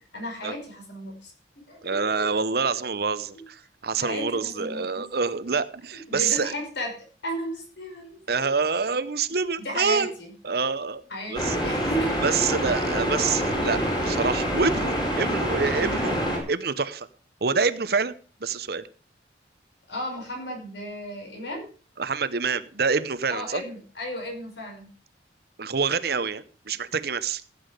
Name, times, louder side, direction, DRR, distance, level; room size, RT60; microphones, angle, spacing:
voice 1, 0.1-2.3 4.0-5.1 5.9-8.6 9.6-10.3 11.1-12.2 16.0-16.4 19.9-21.7 23.3-24.9, equal, 70° left, 2 dB, 5.6 m, -34 dB
voice 2, 1.8-6.5 8.3-10.1 10.4-11.0 11.3-11.6 12.2-16.2 16.5-17.1 17.4-18.8 22.0-23.6 25.6-27.4, right 5 dB, 55° right, 13 dB, 0.8 m, -26 dB
sound 1, 11.3-16.4, equal, 25° left, 4.7 m, -26 dB
15.5 x 8.7 x 5.1 m, 0.40 s
head